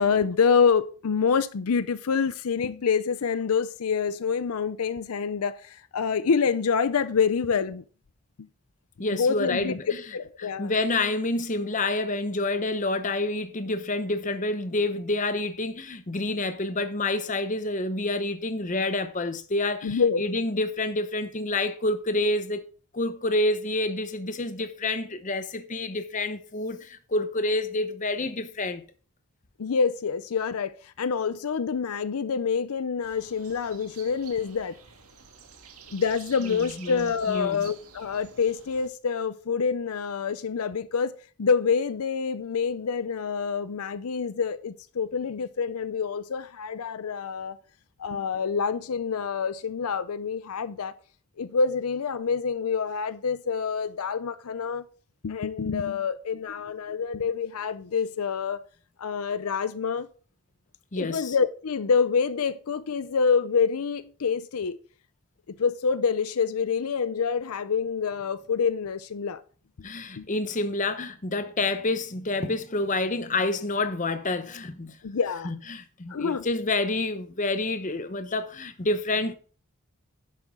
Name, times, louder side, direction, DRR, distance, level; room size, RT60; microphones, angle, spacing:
voice 1, 0.0-7.8 8.4-8.5 9.1-9.8 10.1-10.7 19.8-20.2 29.6-34.8 35.9-41.1 41.4-47.6 48.0-50.9 51.4-54.8 55.2-58.7 59.0-60.1 61.0-64.8 65.5-69.4 70.2-70.3 75.0-75.5 76.1-76.4, left 6 dB, 80° left, 0.5 m, -26 dB
voice 2, 9.0-10.0 10.4-22.6 22.9-28.8 36.4-37.6 60.9-61.3 69.8-75.0 75.4-79.4, left 2 dB, 35° left, 0.8 m, -28 dB
sound 1, 33.0-38.9, right 6 dB, 80° right, 1.9 m, -49 dB
11.0 x 7.7 x 3.7 m
head